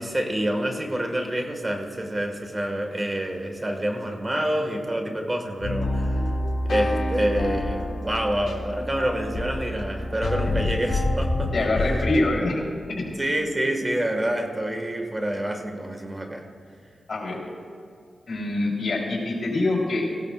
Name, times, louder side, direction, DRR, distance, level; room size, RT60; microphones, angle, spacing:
voice 1, 0.0-6.2 6.7-11.7 13.2-16.5, right 1 dB, 25° right, 4 dB, 1.7 m, -27 dB
sound 1, 5.6-12.2, left 1 dB, 90° left, 1.6 m, -27 dB
voice 2, 11.5-12.6 12.9-13.0 17.1-17.4 18.3-20.0, left 2 dB, 70° left, -2 dB, 3.6 m, -25 dB
17.5 x 16.0 x 2.5 m, 2.3 s
cardioid pair, 55°, 0 cm